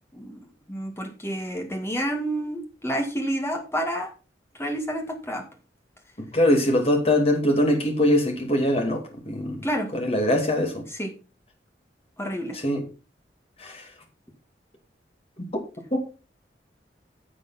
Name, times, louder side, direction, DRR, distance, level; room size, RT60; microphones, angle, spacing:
voice 1, 0.1-4.1 4.6-5.4 9.6-9.9 10.9-11.1 12.2-12.6, equal, 15° left, 1.9 m, -29 dB
voice 2, 6.3-9.6 9.9-10.8 12.6-12.8 13.6-13.8 15.9-16.0, left 1 dB, 35° left, 2.4 m, -22 dB
10.5 x 6.8 x 4.3 m
head